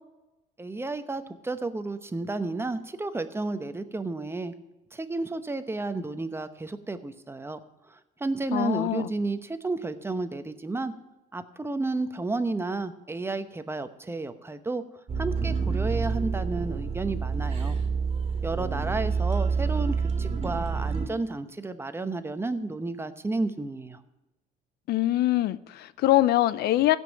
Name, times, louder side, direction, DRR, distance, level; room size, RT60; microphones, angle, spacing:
voice 1, 0.6-4.5 4.9-7.6 7.9-10.9 11.3-14.8 15.2-17.8 18.4-24.0, right 3 dB, 15° right, 0.8 m, -32 dB
voice 2, 8.5-9.1 24.9-27.0, left 15 dB, 70° left, 0.5 m, -23 dB
sound 1, 15.1-21.1, right 5 dB, 35° right, 2.1 m, -28 dB
16.0 x 5.4 x 8.8 m
cardioid pair, 110°, 17 cm